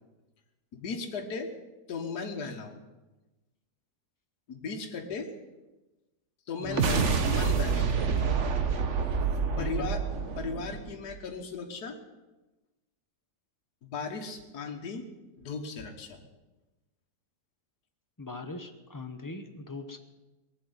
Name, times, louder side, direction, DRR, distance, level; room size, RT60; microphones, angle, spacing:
voice 1, 0.7-1.5 1.9-2.8 4.5-5.3 6.5-8.0 9.6-10.0 10.4-12.0 13.8-15.1 15.4-16.2, left 5 dB, 70° left, 2 dB, 1.9 m, -36 dB
voice 2, 6.6-6.9 9.6-9.9 18.2-20.0, left 2 dB, 15° left, 6 dB, 1.0 m, -40 dB
sound 1, 6.6-11.2, right 5 dB, 50° right, 1.4 m, -28 dB
19.0 x 7.7 x 9.6 m, 1.1 s
omnidirectional pair, 1.8 m